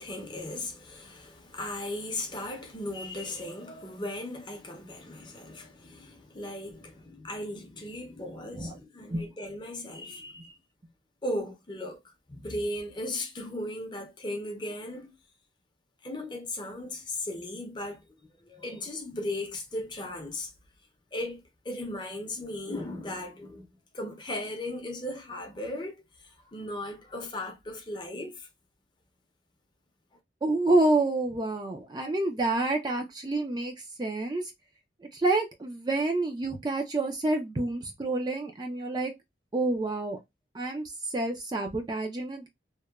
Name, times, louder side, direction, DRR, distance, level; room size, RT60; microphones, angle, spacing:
voice 1, 0.0-10.5 11.2-15.1 16.0-18.0 18.4-20.5 21.1-23.7 23.9-28.5, left 1 dB, 25° left, 0.5 m, -37 dB
voice 2, 30.4-33.7 34.0-34.5 35.1-39.1 39.5-40.2 40.5-40.8 41.1-42.5, right 2 dB, 25° right, 0.3 m, -28 dB
2.9 x 2.1 x 2.2 m
head